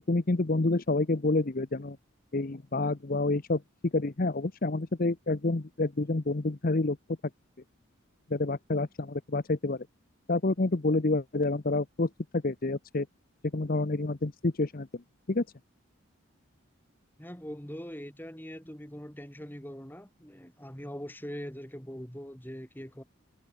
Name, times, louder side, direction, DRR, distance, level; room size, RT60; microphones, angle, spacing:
voice 1, 0.1-2.0 2.3-3.6 3.9-7.0 8.3-9.9 10.3-13.1 13.5-15.0 15.3-15.4, left 2 dB, 40° left, 0.8 m, -28 dB
voice 2, 17.2-23.0, equal, 10° left, 3.6 m, -42 dB
head